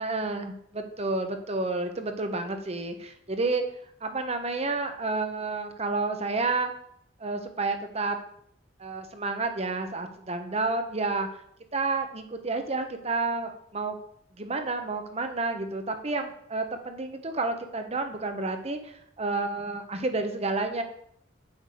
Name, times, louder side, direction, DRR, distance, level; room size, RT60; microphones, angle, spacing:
voice 1, 0.0-3.6 4.0-6.7 7.2-8.2 8.8-11.3 11.7-14.0 14.4-20.8, right 3 dB, 35° right, 6 dB, 1.0 m, -30 dB
8.0 x 5.5 x 6.6 m, 0.69 s
head